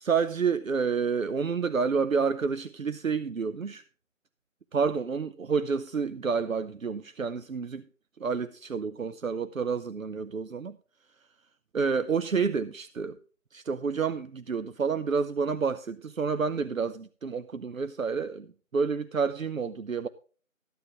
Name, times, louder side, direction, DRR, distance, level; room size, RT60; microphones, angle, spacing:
voice 1, 0.0-3.8 4.7-7.9 8.2-10.8 11.7-13.2 13.5-20.1, right 5 dB, 80° right, 0.7 m, -29 dB
13.5 x 9.2 x 3.6 m
figure-of-eight pair, 175°, 40 cm